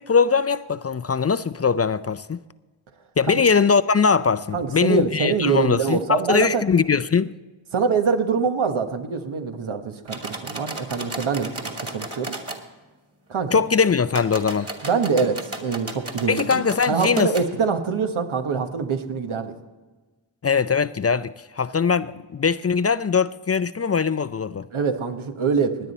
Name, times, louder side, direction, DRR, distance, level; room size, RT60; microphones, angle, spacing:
voice 1, 0.0-2.4 3.2-7.3 13.5-14.7 16.3-17.3 20.4-24.7, left 5 dB, 35° left, 0.4 m, -21 dB
voice 2, 4.5-6.6 7.7-12.4 13.3-13.6 14.8-19.5 24.7-25.9, right 5 dB, 85° right, 1.3 m, -24 dB
sound 1, 10.1-12.6 14.1-17.5, right 2 dB, 30° right, 1.9 m, -34 dB
17.5 x 10.0 x 4.1 m
wide cardioid pair, 80°, 47 cm